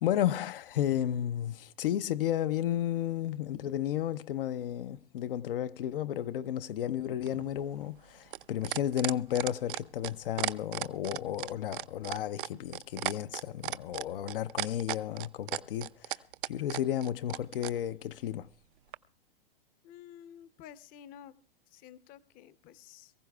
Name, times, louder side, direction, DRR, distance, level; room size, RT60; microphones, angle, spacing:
voice 1, 0.0-18.5, left 11 dB, 70° left, 0.5 m, -33 dB
sound 1, 7.2-17.8 18.9-19.0, right 15 dB, 65° right, 0.5 m, -35 dB
voice 2, 19.8-21.3 21.7-23.1, left 10 dB, 30° left, 0.6 m, -51 dB
23.5 x 15.0 x 2.3 m
hypercardioid pair, 120°, 29 cm